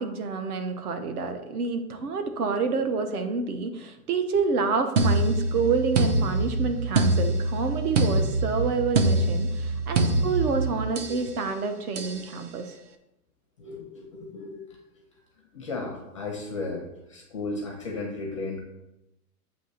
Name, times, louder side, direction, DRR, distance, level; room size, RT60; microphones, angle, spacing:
voice 1, 0.0-12.7, right 4 dB, 70° right, 8 dB, 1.1 m, -28 dB
sound 1, 5.0-11.2 12.0-12.2, right 2 dB, 50° right, 0.6 m, -25 dB
voice 2, 10.0-10.3 11.1-11.3 13.6-15.1 15.5-18.6, left 3 dB, 20° left, -1 dB, 0.4 m, -35 dB
8.0 x 2.9 x 5.7 m, 0.90 s
supercardioid pair, 175°, 47 cm